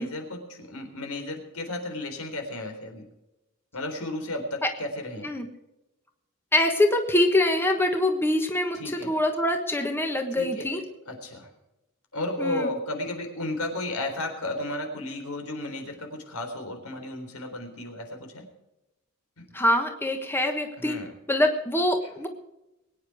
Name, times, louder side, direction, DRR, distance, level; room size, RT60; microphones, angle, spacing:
voice 1, 0.0-3.0 3.7-5.3 8.7-9.1 10.3-10.8 11.1-11.5 12.1-18.5 19.4-19.5 20.8-21.1, left 1 dB, 80° left, 4 dB, 3.9 m, -33 dB
voice 2, 6.5-10.8 12.4-12.7 19.5-21.0 21.3-22.3, left 1 dB, 10° left, 4 dB, 1.3 m, -24 dB
22.5 x 9.7 x 4.8 m, 0.96 s
head